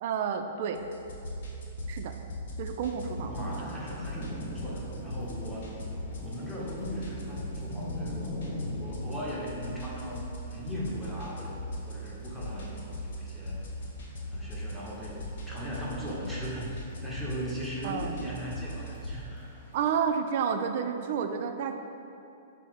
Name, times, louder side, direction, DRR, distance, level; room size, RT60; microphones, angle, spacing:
voice 1, 0.0-0.8 1.9-2.1 2.6-3.3 17.8-18.1 19.7-21.7, right 7 dB, 55° right, 6 dB, 0.3 m, -30 dB
sound 1, 0.7-19.2, equal, 70° left, 0.8 m, -39 dB
Thunder / Rain, 2.9-19.9, left 1 dB, 55° left, 1.3 m, -44 dB
voice 2, 3.3-5.7 6.2-8.3 8.8-13.6 14.3-19.5, equal, ahead, -7 dB, 0.9 m, -39 dB
5.5 x 2.0 x 4.5 m, 2.7 s
hypercardioid pair, 140°, 0 cm